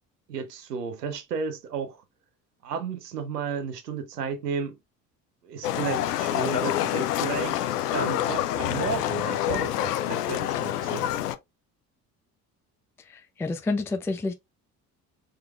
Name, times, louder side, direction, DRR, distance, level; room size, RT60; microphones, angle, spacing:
voice 1, 0.3-2.0 2.6-4.8 5.4-11.1, right 6 dB, 80° right, 0.8 m, -33 dB
Livestock farm animals working animals, 5.6-11.4, left 12 dB, 75° left, 0.6 m, -27 dB
voice 2, 13.1-14.3, left 3 dB, 5° left, 0.4 m, -29 dB
4.5 x 3.7 x 2.3 m
figure-of-eight pair, 55°, 47 cm